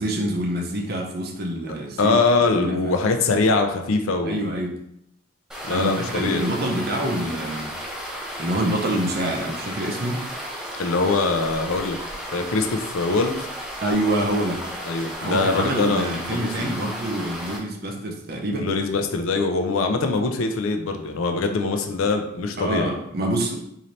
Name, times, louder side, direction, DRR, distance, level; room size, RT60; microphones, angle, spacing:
voice 1, 0.0-2.2 2.6-3.0 4.3-4.8 5.7-7.7 8.4-10.2 13.8-14.6 15.2-18.7 22.6-23.6, right 1 dB, 45° right, 1 dB, 0.6 m, -26 dB
voice 2, 2.0-4.4 5.7-6.5 10.8-12.0 12.3-13.5 14.9-16.7 18.5-22.9, left 3 dB, 75° left, 5 dB, 0.5 m, -23 dB
sound 1, 5.5-17.6, equal, 5° right, 0.4 m, -34 dB
4.0 x 2.7 x 3.2 m, 0.77 s
head